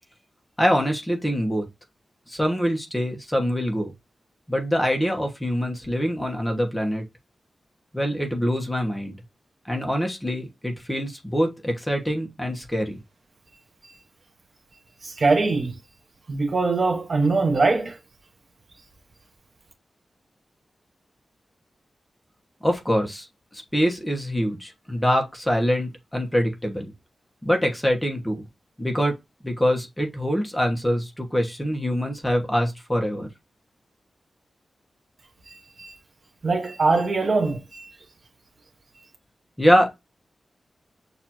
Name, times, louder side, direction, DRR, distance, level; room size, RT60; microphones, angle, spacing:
voice 1, 0.6-1.7 2.3-3.9 4.5-7.0 7.9-9.2 9.6-13.0 22.6-23.3 23.5-26.9 27.4-28.4 28.8-29.2 29.4-33.3 39.6-39.9, equal, 5° left, 1.1 m, -24 dB
voice 2, 15.0-15.8 16.3-18.0 35.5-35.9 36.4-37.9, right 3 dB, 45° right, 0.8 m, -22 dB
6.6 x 2.6 x 2.9 m
wide cardioid pair, 180°, 0 cm